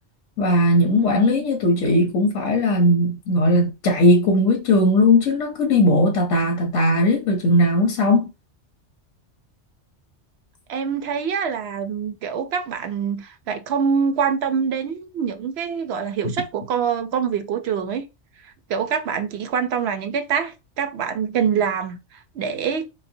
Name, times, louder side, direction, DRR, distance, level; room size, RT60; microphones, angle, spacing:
voice 1, 0.4-8.3, left 1 dB, 90° left, 1.1 m, -18 dB
voice 2, 0.9-1.5 10.7-18.1 18.7-22.8, right 7 dB, 65° right, 0.8 m, -25 dB
5.3 x 2.1 x 2.6 m
omnidirectional pair, 1.2 m